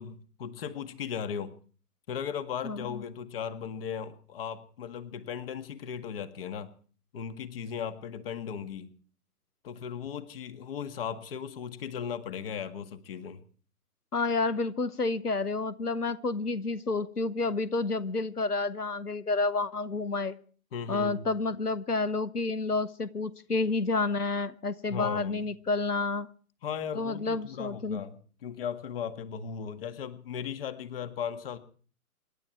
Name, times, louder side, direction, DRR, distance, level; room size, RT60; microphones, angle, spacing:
voice 1, 0.0-1.5 2.1-6.7 7.1-8.9 9.6-13.4 20.7-21.3 24.9-25.4 26.6-31.6, left 7 dB, 40° left, 10 dB, 1.8 m, -37 dB
voice 2, 2.6-3.0 14.1-20.4 20.9-26.3 26.9-28.0, left 3 dB, 90° left, 17 dB, 1.0 m, -30 dB
27.0 x 11.5 x 4.6 m, 0.43 s
figure-of-eight pair, 125°, 44 cm